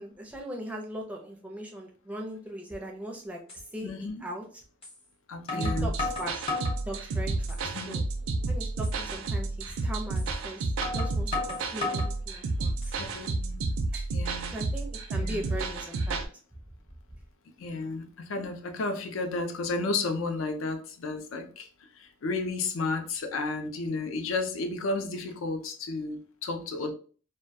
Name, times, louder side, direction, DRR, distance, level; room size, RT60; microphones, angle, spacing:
voice 1, 0.0-3.4 3.7-4.6 5.5-6.4 6.9-7.6 7.9-8.0 8.5-10.6 10.9-13.0 13.9-14.1 14.5-16.3, right 1 dB, 5° right, 0 dB, 0.4 m, -39 dB
sound 1, 2.9-3.0 3.5-3.6 4.8-5.0 5.5-6.8 7.3-7.9 8.2-8.3 8.8-9.0 10.2-10.3 10.8-12.1 12.6-13.2, left 3 dB, 25° left, 0.8 m, -34 dB
voice 2, 3.8-4.2 5.3-6.0 7.7-8.1 13.0-13.7 14.1-14.5 15.2-15.6 17.6-26.9, left 3 dB, 70° left, 6 dB, 0.4 m, -33 dB
sound 2, 5.6-16.3, right 2 dB, 65° right, 0.4 m, -31 dB
2.2 x 2.1 x 2.6 m, 0.41 s
head